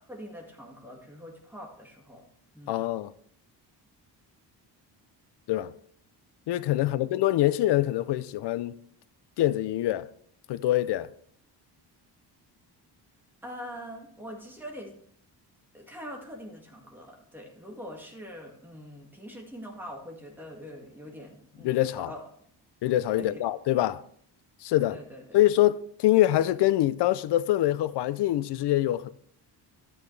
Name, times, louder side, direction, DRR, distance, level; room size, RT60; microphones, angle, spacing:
voice 1, 0.1-2.3 2.5-2.8 6.8-7.1 13.4-15.0 15.7-22.2 23.2-23.4 24.8-25.4, equal, 5° right, 1.9 m, -43 dB
voice 2, 2.7-3.1 5.5-5.7 6.5-8.8 9.4-10.1 10.5-11.1 21.6-22.1 22.8-24.0 24.6-25.0 25.3-29.1, left 14 dB, 70° left, 0.6 m, -24 dB
11.5 x 8.9 x 3.2 m
cardioid pair, 145°, 42 cm